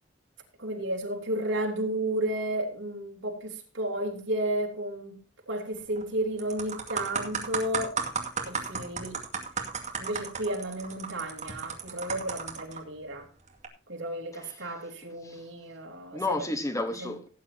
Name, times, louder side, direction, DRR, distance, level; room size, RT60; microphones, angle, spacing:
voice 1, 0.6-5.2 5.5-8.0 8.5-9.2 10.0-13.3 13.9-16.2 17.0-17.1, right 1 dB, 75° right, 3.2 m, -32 dB
sound 1, 5.8-6.0 6.4-12.8 13.5-13.7, right 5 dB, 40° right, 2.3 m, -34 dB
voice 2, 14.3-14.7 15.2-15.5 16.1-17.3, left 2 dB, 15° left, 1.1 m, -32 dB
17.5 x 9.4 x 2.8 m
head